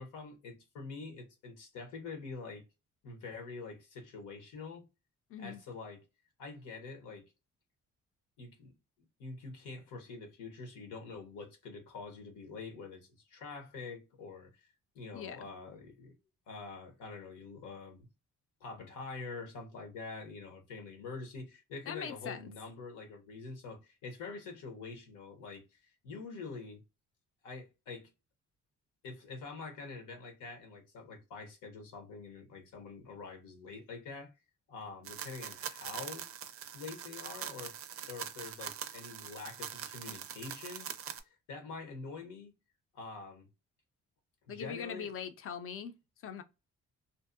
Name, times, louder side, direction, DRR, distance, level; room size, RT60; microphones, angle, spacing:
voice 1, 0.0-2.6 3.0-4.9 5.4-6.0 6.4-7.2 8.4-8.7 9.2-14.7 14.9-16.1 16.5-18.1 18.6-26.8 27.4-28.1 29.0-34.3 34.7-36.3 36.7-37.8 38.1-42.5 42.9-43.5 44.5-45.1, left 4 dB, 85° left, 0.9 m, -46 dB
voice 2, 5.3-5.6 15.1-15.4 21.9-22.4 44.5-46.4, left 7 dB, 45° left, 0.5 m, -41 dB
sound 1, 35.0-41.2, right 9 dB, 50° right, 0.4 m, -43 dB
2.6 x 2.0 x 2.4 m
cardioid pair, 90°, 30 cm